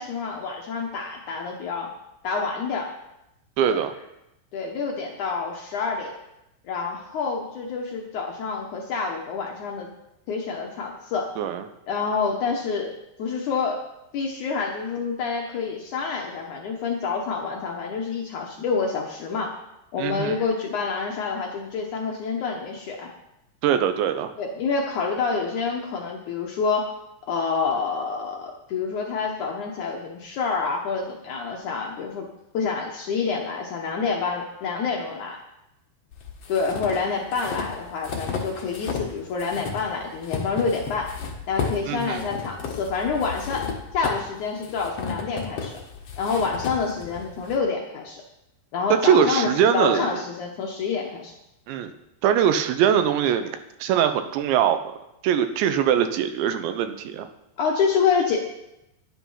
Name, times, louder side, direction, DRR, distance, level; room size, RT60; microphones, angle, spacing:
voice 1, 0.0-1.9 2.2-2.9 3.7-3.8 4.5-6.1 6.6-9.9 10.3-11.3 11.9-13.8 14.1-19.6 19.9-23.1 24.4-26.9 27.3-32.3 32.5-35.4 36.5-41.2 41.5-45.8 46.2-48.2 48.7-51.4 57.6-58.4, left 5 dB, 80° left, 0 dB, 1.7 m, -27 dB
voice 2, 3.6-3.9 11.4-11.6 20.0-20.4 23.6-24.3 41.9-42.2 49.0-50.1 51.7-51.9 52.2-54.8 55.2-57.3, right 9 dB, 80° right, 9 dB, 3.0 m, -22 dB
sound 1, 36.1-39.1 39.4-47.6, left 5 dB, 60° left, 1.6 m, -34 dB
11.5 x 10.5 x 5.6 m, 0.88 s
omnidirectional pair, 5.2 m